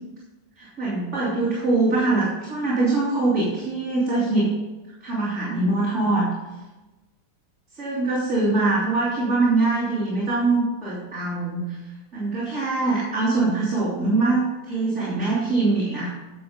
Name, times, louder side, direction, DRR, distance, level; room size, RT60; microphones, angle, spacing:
voice 1, 0.6-4.5 5.0-6.3 7.7-11.8 12.1-14.4 14.7-16.1, right 3 dB, 40° right, -9 dB, 3.5 m, -23 dB
11.0 x 6.6 x 5.2 m, 1.1 s
omnidirectional pair, 2.0 m